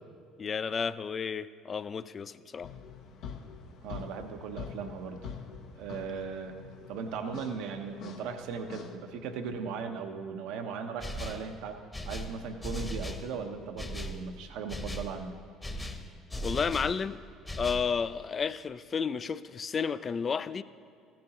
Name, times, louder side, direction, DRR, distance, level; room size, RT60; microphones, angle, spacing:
voice 1, 0.4-2.7 16.4-17.2 17.6-20.6, left 6 dB, 40° left, 15 dB, 0.3 m, -32 dB
sound 1, 2.6-9.0, left 6 dB, 65° left, 0.8 m, -45 dB
voice 2, 3.8-5.3 5.8-6.6 6.9-11.8 12.0-15.4, right 5 dB, 70° right, 6 dB, 0.8 m, -38 dB
sound 2, 11.0-11.5 11.9-13.3 13.8-14.2 14.7-15.1 15.6-17.0 17.5-17.9, equal, 15° left, 1.0 m, -37 dB
14.5 x 10.5 x 2.9 m, 2.4 s
hypercardioid pair, 65°, 0 cm